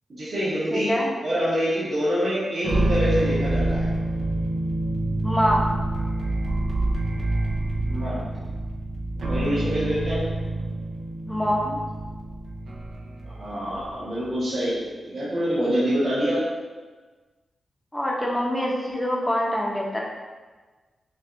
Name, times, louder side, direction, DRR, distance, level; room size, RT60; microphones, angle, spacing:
voice 1, 0.1-1.0 1.2-3.9 7.8-8.2 9.2-10.2 13.2-16.4, equal, 50° right, -12 dB, 1.2 m, -26 dB
voice 2, 0.7-1.1 5.2-5.7 11.3-11.8 17.9-20.0, equal, 5° left, -2 dB, 0.7 m, -24 dB
sound 1, 2.6-14.0, right 2 dB, 70° right, 0.6 m, -27 dB
5.9 x 2.3 x 2.5 m, 1.3 s
wide cardioid pair, 125°, 0 cm